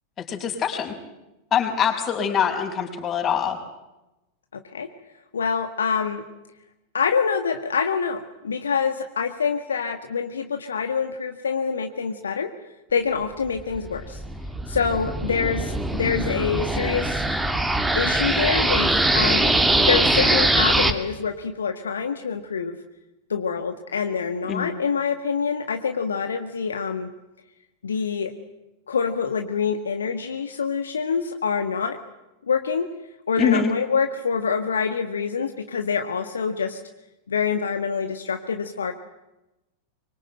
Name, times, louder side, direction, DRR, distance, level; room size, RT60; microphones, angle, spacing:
voice 1, 0.3-0.9 1.5-3.6 24.5-24.7 33.4-33.7, left 7 dB, 25° left, 3 dB, 5.7 m, -23 dB
voice 2, 5.3-6.2 6.9-12.5 12.9-14.2 14.7-17.2 17.9-19.5 19.9-22.7 23.3-27.1 27.8-28.3 28.9-32.0 32.5-32.9 33.3-36.8 37.3-38.9, left 6 dB, 70° left, 6 dB, 1.7 m, -26 dB
sound 1, 13.6-20.9, right 1 dB, 5° right, 2.4 m, -22 dB
25.0 x 23.5 x 9.0 m, 0.96 s
figure-of-eight pair, 90°, 0 cm